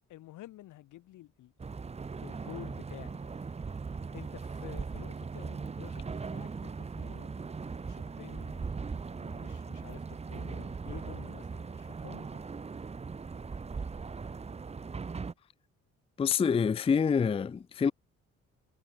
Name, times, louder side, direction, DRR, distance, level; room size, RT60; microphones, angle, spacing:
voice 1, 0.1-1.5 2.2-3.3 4.1-6.0 6.3-7.3 7.9-12.4, left 15 dB, 80° left, 1.3 m, -50 dB
sound 1, 1.6-15.3, right 5 dB, 20° right, 0.7 m, -39 dB
voice 2, 16.2-17.9, left 6 dB, 20° left, 0.4 m, -26 dB
cardioid pair, 90°, 30 cm